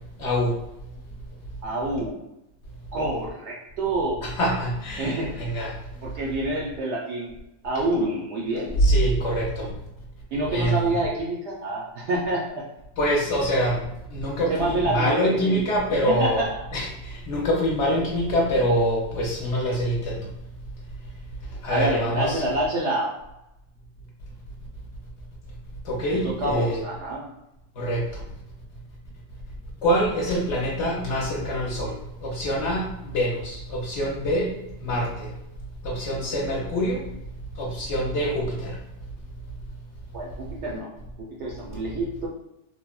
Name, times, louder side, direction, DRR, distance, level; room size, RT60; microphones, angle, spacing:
voice 1, 0.2-0.5 4.2-5.7 7.7-7.8 8.8-9.7 10.5-11.0 13.0-16.4 16.7-20.3 21.6-22.4 25.8-26.8 27.8-28.2 29.8-34.5 34.8-35.3 35.8-37.0 37.6-38.8, equal, 60° left, -3 dB, 0.8 m, -25 dB
voice 2, 1.6-2.2 2.9-4.1 5.0-5.4 6.0-7.3 7.6-8.8 10.3-12.4 14.5-15.6 16.1-16.6 17.9-18.0 21.7-23.1 26.2-27.3 40.1-40.9 41.4-42.3, right 1 dB, 65° right, -3 dB, 0.7 m, -27 dB
3.3 x 2.1 x 2.3 m, 0.87 s
omnidirectional pair, 1.5 m